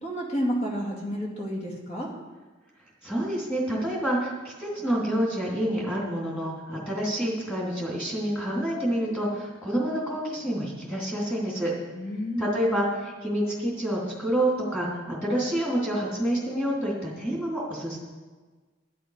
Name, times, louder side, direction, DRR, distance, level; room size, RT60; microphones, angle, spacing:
voice 1, 0.0-2.1 11.9-12.6, equal, 35° left, -2 dB, 2.4 m, -30 dB
voice 2, 3.0-11.7 12.4-18.0, right 1 dB, 10° left, -4 dB, 3.2 m, -28 dB
11.0 x 10.0 x 5.0 m, 1.3 s
head